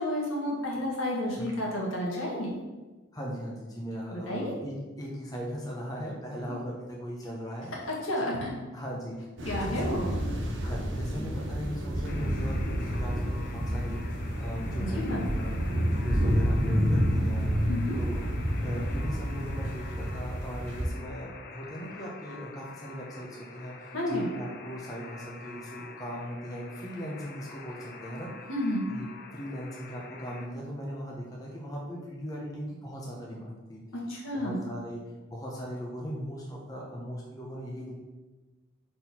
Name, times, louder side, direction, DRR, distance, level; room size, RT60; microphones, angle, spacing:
voice 1, 0.0-2.5 4.1-4.5 8.0-8.5 9.4-10.1 14.9-15.3 17.7-18.0 23.9-24.3 28.5-28.8 34.1-34.6, left 1 dB, 70° left, -3 dB, 1.7 m, -31 dB
voice 2, 3.1-7.7 8.2-8.4 8.7-9.3 9.6-10.2 10.6-14.0 14.4-15.5 15.9-17.5 18.0-18.3 18.6-28.5 28.9-29.1 29.3-33.8 34.3-35.0 35.3-37.9, equal, 20° left, -3 dB, 0.8 m, -39 dB
sound 1, 9.4-20.9, equal, 60° right, 1.1 m, -29 dB
Alarm, 12.1-30.5, left 4 dB, 50° left, 0.6 m, -47 dB
4.3 x 4.1 x 5.6 m, 1.2 s
head